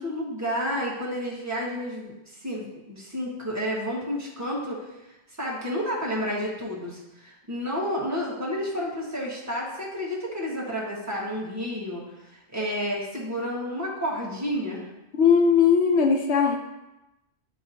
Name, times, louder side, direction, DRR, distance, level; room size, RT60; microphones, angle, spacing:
voice 1, 0.0-14.8, equal, 15° right, -5 dB, 1.5 m, -31 dB
voice 2, 15.1-16.6, left 6 dB, 80° left, 3 dB, 1.0 m, -19 dB
10.5 x 3.9 x 2.8 m, 0.98 s
omnidirectional pair, 1.1 m